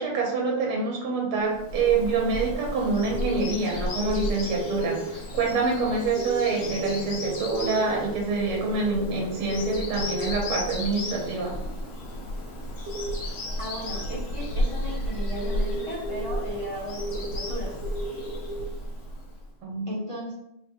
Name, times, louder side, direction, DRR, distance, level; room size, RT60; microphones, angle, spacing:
voice 1, 0.0-11.5 19.6-19.9, right 4 dB, 90° right, -1 dB, 1.8 m, -26 dB
Bird vocalization bird call bird song, 1.5-19.5, equal, 65° left, 1.6 m, -33 dB
sound 1, 2.6-2.7 2.9-5.0 6.2-10.9 12.9-13.1 14.1-16.6 17.0-17.5 17.8-18.6, right 1 dB, 70° right, 1.1 m, -35 dB
voice 2, 13.6-17.8 19.9-20.3, equal, 25° left, -7 dB, 0.6 m, -36 dB
3.9 x 2.2 x 4.4 m, 0.80 s
omnidirectional pair, 2.3 m